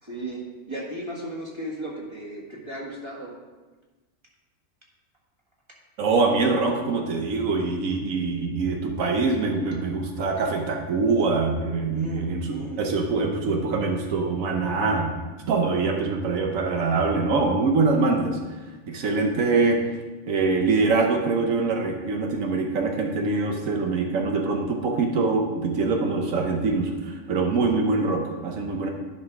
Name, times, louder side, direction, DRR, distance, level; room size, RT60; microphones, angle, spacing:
voice 1, 0.0-3.3 11.9-12.8, right 1 dB, 20° right, -3 dB, 1.6 m, -35 dB
voice 2, 6.0-15.1 15.5-18.4 18.9-19.8 20.3-28.9, right 3 dB, 80° right, 2 dB, 1.3 m, -24 dB
11.0 x 5.4 x 3.6 m, 1.2 s
omnidirectional pair, 1.4 m